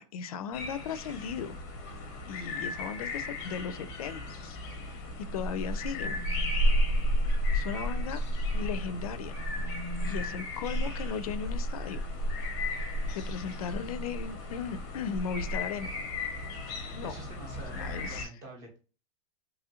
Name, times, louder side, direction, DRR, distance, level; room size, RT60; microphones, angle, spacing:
voice 1, 0.0-1.6 2.3-4.6 5.3-6.2 7.5-8.2 8.5-9.4 10.0-12.0 13.1-15.9 16.9-17.2 17.7-18.3, left 7 dB, 85° left, 13 dB, 0.4 m, -37 dB
sound 1, 0.5-18.3, equal, 30° left, 0.5 m, -33 dB
sound 2, 5.0-6.8 9.0-10.7 12.7-15.0, left 4 dB, 85° right, 0.4 m, -49 dB
voice 2, 17.0-18.8, right 2 dB, 20° right, 2 dB, 0.5 m, -46 dB
2.9 x 2.4 x 2.8 m, 0.35 s
supercardioid pair, 175°, 18 cm